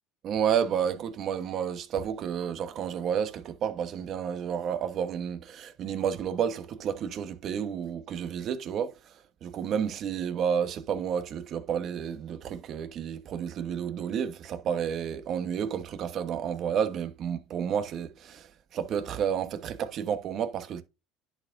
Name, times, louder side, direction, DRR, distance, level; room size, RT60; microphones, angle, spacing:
voice 1, 0.2-9.0 9.4-20.8, right 8 dB, 50° right, 1.2 m, -31 dB
10.5 x 4.6 x 2.7 m
supercardioid pair, 105°, 0 cm